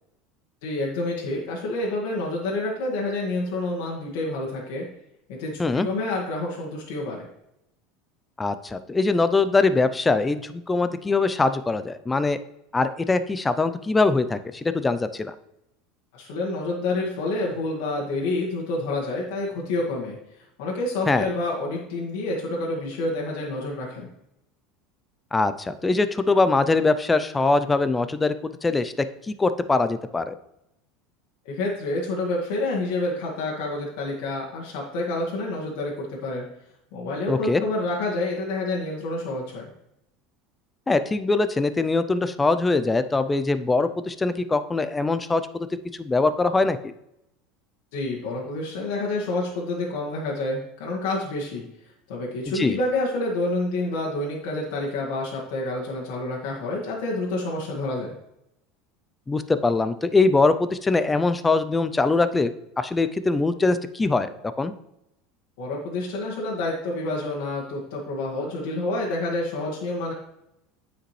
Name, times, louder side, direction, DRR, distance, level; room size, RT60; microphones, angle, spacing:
voice 1, 0.6-4.8 5.3-7.3 16.1-20.2 20.6-24.1 31.4-36.4 36.9-39.7 47.9-51.6 52.1-58.1 65.6-70.1, left 2 dB, 75° left, -3 dB, 1.7 m, -28 dB
voice 2, 8.4-12.4 12.7-15.3 21.1-21.3 25.3-28.9 29.3-30.3 37.3-37.6 40.9-45.7 46.0-46.9 52.5-52.8 59.3-62.5 62.8-64.3 64.6-64.7, left 3 dB, 10° left, 12 dB, 0.4 m, -22 dB
8.9 x 5.0 x 3.2 m, 0.83 s
supercardioid pair, 140°, 0 cm